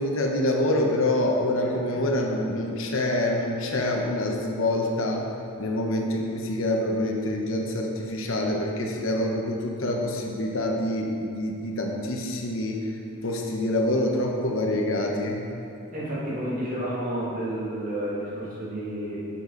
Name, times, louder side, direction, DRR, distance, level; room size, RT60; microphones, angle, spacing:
voice 1, 0.0-5.3 5.6-12.9 13.2-15.4, left 1 dB, 70° left, 0 dB, 1.0 m, -26 dB
voice 2, 15.9-19.2, right 1 dB, 40° right, -7 dB, 1.9 m, -30 dB
7.8 x 6.9 x 4.0 m, 2.8 s
head